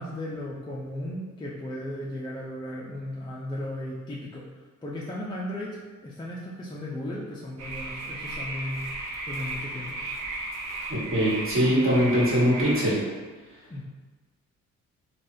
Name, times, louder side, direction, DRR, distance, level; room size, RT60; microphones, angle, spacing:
voice 1, 0.0-4.5 4.8-10.0 13.7-13.8, left 1 dB, 15° left, -5 dB, 0.4 m, -36 dB
sound 1, 7.6-12.9, right 2 dB, 65° right, 0.6 m, -35 dB
voice 2, 10.9-13.0, equal, 45° right, -8 dB, 1.4 m, -22 dB
3.3 x 2.3 x 2.7 m, 1.3 s
cardioid pair, 90°, 30 cm